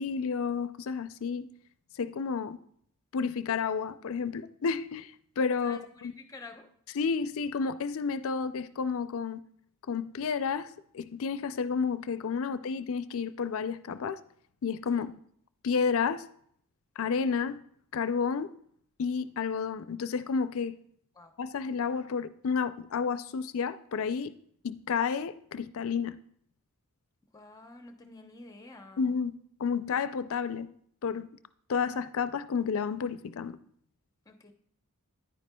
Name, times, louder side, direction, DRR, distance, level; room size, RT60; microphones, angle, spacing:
voice 1, 0.0-1.5 2.0-2.6 3.1-5.1 5.4-6.1 6.9-9.4 9.9-14.2 14.6-15.1 15.6-16.3 17.0-17.6 17.9-18.5 19.0-20.7 21.4-24.3 24.6-26.2 29.0-30.7 31.0-31.3 31.7-33.6, left 5 dB, 65° left, 0.4 m, -31 dB
voice 2, 5.6-6.7 14.9-15.0 21.2-21.3 27.3-29.1 34.3-34.5, left 3 dB, 15° left, 0.8 m, -49 dB
10.0 x 9.2 x 2.3 m
head